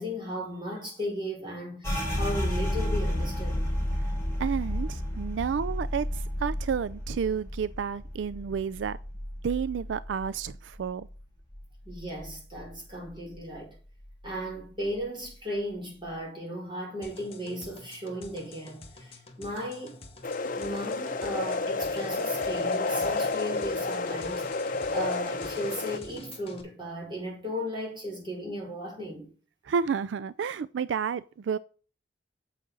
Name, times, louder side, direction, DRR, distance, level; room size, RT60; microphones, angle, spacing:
voice 1, 0.0-3.6 11.8-13.7 14.2-20.0 20.6-29.3, equal, 25° right, 5.1 m, -36 dB
sound 1, 1.8-11.2 11.5-12.8 13.1-13.6 14.0-14.6, equal, 15° left, 4.6 m, -32 dB
voice 2, 4.4-9.0 9.4-11.1 29.6-31.6, right 6 dB, 85° right, 0.4 m, -31 dB
sound 2, 17.0-26.6, left 2 dB, 30° left, 1.9 m, -47 dB
sound 3, 20.2-26.0, left 3 dB, 50° left, 0.8 m, -30 dB
9.3 x 7.5 x 3.9 m
head